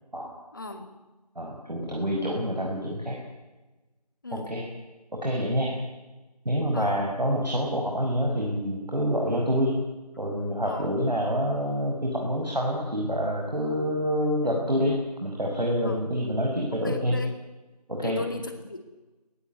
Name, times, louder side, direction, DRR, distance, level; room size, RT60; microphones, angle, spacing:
voice 1, 0.5-0.9 4.2-4.5 6.7-7.0 10.6-10.9 14.4-14.6 15.8-16.0 16.8-17.3 18.0-18.8, left 2 dB, 30° left, 7 dB, 2.3 m, -37 dB
voice 2, 1.4-3.2 4.5-4.7 5.2-5.7 6.4-9.7 10.2-17.2 17.9-18.2, equal, 80° right, 0 dB, 6.4 m, -27 dB
21.5 x 17.5 x 9.6 m, 1.1 s
figure-of-eight pair, 170°, 21 cm